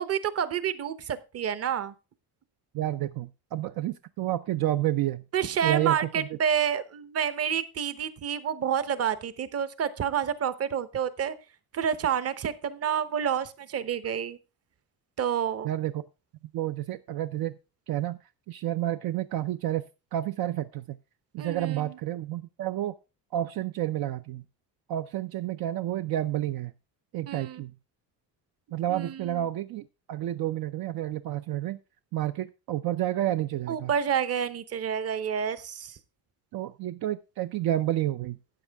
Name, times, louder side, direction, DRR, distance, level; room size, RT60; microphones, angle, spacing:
voice 1, 0.0-1.9 5.3-11.3 11.7-14.4 15.2-15.7 21.4-21.9 27.3-27.6 28.9-29.4 33.7-36.0, right 8 dB, 35° right, 15 dB, 0.9 m, -29 dB
voice 2, 2.7-5.2 5.6-6.3 15.6-16.0 16.5-17.6 17.9-18.2 18.5-19.8 20.1-21.0 21.3-22.9 23.3-24.4 24.9-26.7 27.1-27.7 28.7-31.8 32.1-33.9 36.5-38.4, right 13 dB, 60° right, 10 dB, 0.7 m, -30 dB
13.0 x 9.0 x 3.5 m, 0.29 s
cardioid pair, 150°, 41 cm